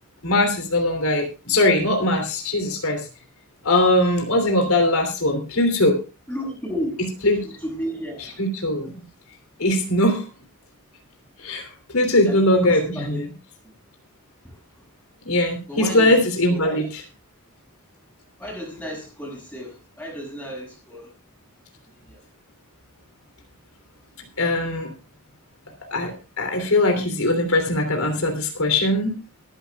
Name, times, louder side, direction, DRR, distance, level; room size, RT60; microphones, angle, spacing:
voice 1, 0.2-3.0 3.6-6.0 7.2-7.4 8.4-8.9 9.6-10.2 11.4-11.7 11.9-13.3 15.2-17.0 24.4-24.9 25.9-29.1, left 1 dB, 75° left, 4 dB, 3.1 m, -20 dB
voice 2, 6.3-7.1 7.4-8.4 12.2-13.2 13.6-13.7 14.4-14.6 15.7-16.2 16.5-16.9 18.4-21.1 22.1-22.2, equal, 5° left, -1 dB, 6.7 m, -33 dB
22.5 x 11.0 x 2.4 m, 0.31 s
head